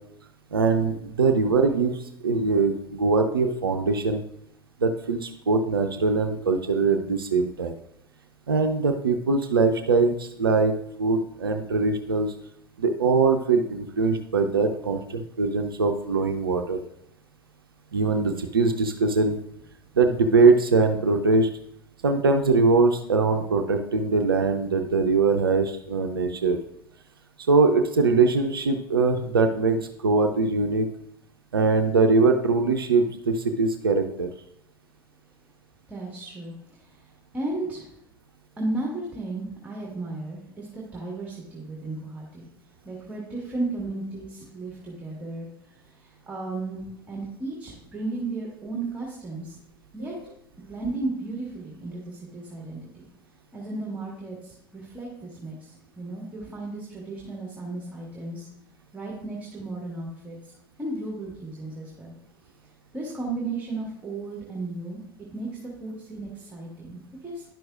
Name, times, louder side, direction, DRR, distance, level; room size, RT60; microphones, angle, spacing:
voice 1, 0.5-4.2 4.8-7.7 8.5-10.7 11.0-12.3 12.8-16.8 17.9-19.4 20.0-21.5 22.0-26.6 27.5-30.9 31.5-34.3 50.0-50.1, right 4 dB, 80° right, 6 dB, 0.5 m, -22 dB
voice 2, 35.9-37.1 37.3-37.9 38.6-42.4 42.9-45.5 45.8-49.6 49.9-50.1 50.7-53.0 53.5-58.5 58.9-60.5 60.8-62.1 62.9-65.0 65.3-67.4, right 2 dB, 10° right, -3 dB, 1.7 m, -34 dB
10.5 x 6.1 x 2.4 m, 0.75 s
figure-of-eight pair, 80°, 12 cm